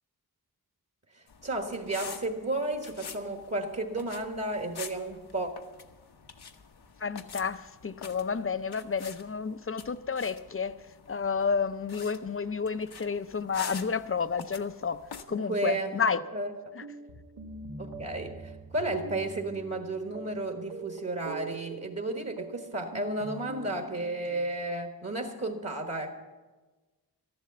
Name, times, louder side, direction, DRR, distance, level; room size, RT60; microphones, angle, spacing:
voice 1, 1.1-5.5 15.3-16.0 16.3-16.5 17.8-26.1, right 2 dB, 40° right, 4 dB, 1.4 m, -33 dB
sound 1, 1.3-15.2, left 6 dB, 80° left, 1.0 m, -47 dB
voice 2, 7.0-15.0 15.3-16.2 16.8-16.9, left 5 dB, 35° left, 13 dB, 0.5 m, -31 dB
sound 2, 16.1-24.5, right 3 dB, 85° right, 2.0 m, -44 dB
13.5 x 11.5 x 6.8 m, 1.2 s
wide cardioid pair, 105°, 38 cm